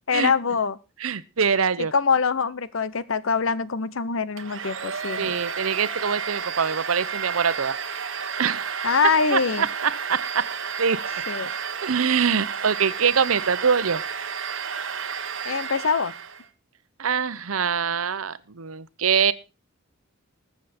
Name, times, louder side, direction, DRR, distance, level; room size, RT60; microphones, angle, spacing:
voice 1, 0.1-0.8 1.9-5.4 8.8-9.7 11.3-11.5 15.4-16.1, left 5 dB, 75° left, 18 dB, 0.8 m, -24 dB
voice 2, 1.0-1.9 5.2-7.7 8.4-8.9 9.3-10.4 10.8-11.0 11.8-14.0 17.0-19.3, right 6 dB, 85° right, 16 dB, 0.8 m, -24 dB
Domestic sounds home sounds, 4.4-16.5, right 6 dB, 65° right, 1.3 m, -32 dB
20.5 x 7.1 x 4.3 m, 0.29 s
head